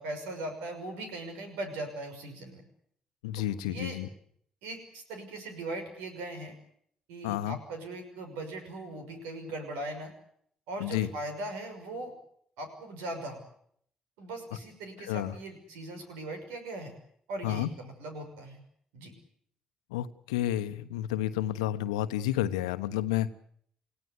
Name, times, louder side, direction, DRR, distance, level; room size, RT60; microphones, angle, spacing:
voice 1, 0.0-2.6 3.6-4.0 4.6-6.5 7.1-10.1 10.7-12.1 12.6-13.4 14.2-16.9 17.3-18.6 18.9-19.1, right 2 dB, 75° right, 6 dB, 6.1 m, -39 dB
voice 2, 3.2-4.1 7.2-7.6 10.8-11.1 15.1-15.3 17.4-17.7 19.9-23.3, left 13 dB, 80° left, 12 dB, 1.2 m, -30 dB
29.0 x 16.5 x 8.2 m, 0.66 s
figure-of-eight pair, 40°, 3 cm